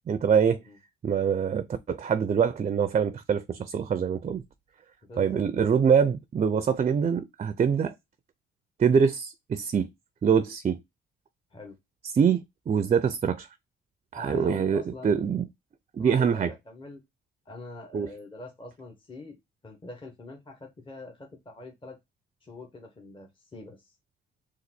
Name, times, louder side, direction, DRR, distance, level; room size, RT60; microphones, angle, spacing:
voice 1, 0.1-0.6 1.0-4.4 5.2-7.9 8.8-9.9 10.2-10.8 12.1-12.4 12.7-13.5 14.1-15.4 15.9-16.5 17.9-18.1, right 7 dB, 35° right, 0.5 m, -24 dB
voice 2, 5.0-5.4 11.5-11.8 14.1-15.2 16.0-17.0 17.4-19.4 19.6-22.0 22.4-23.9, left 2 dB, 25° left, 1.1 m, -44 dB
3.9 x 2.6 x 4.2 m
cardioid pair, 90°, 20 cm